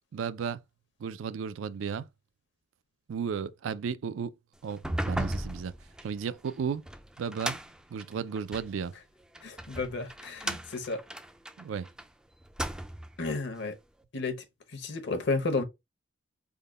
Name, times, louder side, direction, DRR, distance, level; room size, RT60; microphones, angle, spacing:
voice 1, 0.1-0.6 1.0-2.1 3.1-4.3 4.6-5.7 6.0-6.8 7.2-7.6 7.9-8.9 11.6-11.9, right 6 dB, 85° right, 0.4 m, -34 dB
sound 1, 4.7-8.8 9.3-12.1 12.4-13.2, right 1 dB, 5° right, 0.3 m, -36 dB
voice 2, 9.4-11.0 13.2-13.7 14.1-14.4 14.7-15.6, left 3 dB, 60° left, 0.8 m, -32 dB
3.6 x 2.2 x 3.6 m
head